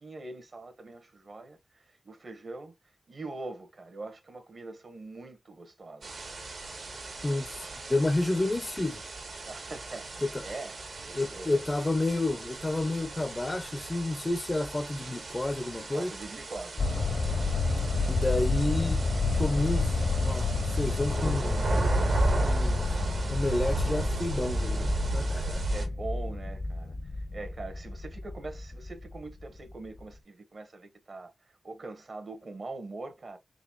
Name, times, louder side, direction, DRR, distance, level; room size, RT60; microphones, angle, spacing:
voice 1, 0.0-2.7 3.1-6.1 9.4-11.6 15.9-16.9 25.4-33.4, right 3 dB, 60° right, 1.1 m, -43 dB
sound 1, 6.0-25.9, right 2 dB, 75° right, 1.4 m, -35 dB
voice 2, 7.9-9.0 10.2-10.3 11.2-16.1 18.1-19.0 19.4-19.9 20.2-20.5 20.7-21.7 22.4-22.9 23.3-25.6, left 2 dB, 25° left, 0.5 m, -30 dB
sound 2, 16.8-29.5 30.0-30.1, left 3 dB, 65° left, 0.8 m, -30 dB
3.9 x 3.4 x 3.0 m
cardioid pair, 70°, 0 cm